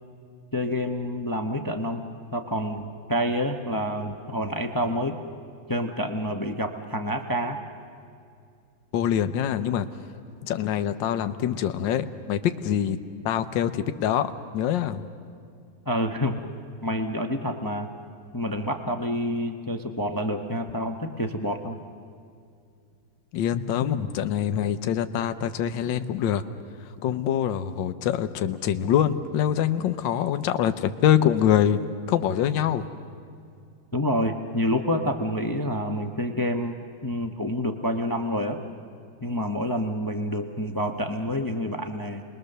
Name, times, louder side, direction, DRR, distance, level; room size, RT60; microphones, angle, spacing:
voice 1, 0.5-2.0 2.3-5.1 5.7-7.6 15.9-16.4 16.8-17.9 18.3-21.8 33.9-36.8 37.0-38.6 39.2-42.2, equal, 25° left, 5 dB, 0.4 m, -28 dB
voice 2, 8.9-9.9 10.4-13.0 13.2-15.1 23.3-26.4 27.0-32.9, left 10 dB, 75° left, 10 dB, 1.4 m, -24 dB
29.0 x 21.0 x 6.7 m, 2.4 s
omnidirectional pair, 2.1 m